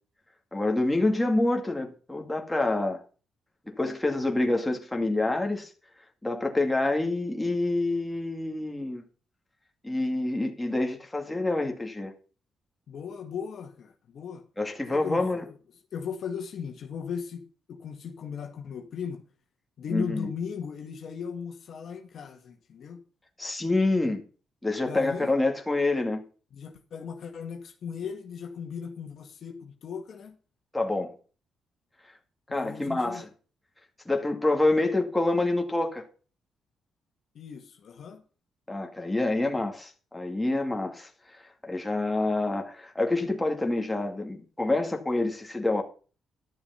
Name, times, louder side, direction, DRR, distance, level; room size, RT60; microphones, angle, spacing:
voice 1, 0.5-3.0 3.7-5.7 6.2-9.0 9.8-12.1 14.6-15.4 19.9-20.3 23.4-24.2 24.6-26.2 30.7-31.1 32.5-33.3 34.1-36.0 38.7-41.1 41.6-45.8, left 2 dB, 10° left, 2.2 m, -27 dB
voice 2, 12.9-14.4 14.9-15.6 15.9-19.2 19.8-23.0 24.9-25.3 26.5-30.4 32.5-33.2 37.4-38.2, left 6 dB, 65° left, 1.8 m, -37 dB
12.0 x 7.0 x 5.7 m
cardioid pair, 90°, 0 cm